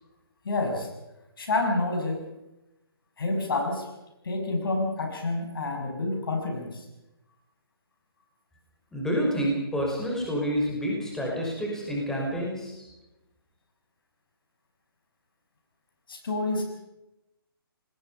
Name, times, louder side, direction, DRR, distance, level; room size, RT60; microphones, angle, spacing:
voice 1, 0.4-0.9 1.4-2.3 3.2-3.9 4.2-6.8 16.1-16.6, left 2 dB, 65° left, 3 dB, 6.4 m, -28 dB
voice 2, 8.9-12.9, equal, 5° left, -2 dB, 5.4 m, -28 dB
27.0 x 20.0 x 5.6 m, 0.96 s
figure-of-eight pair, 145°, 13 cm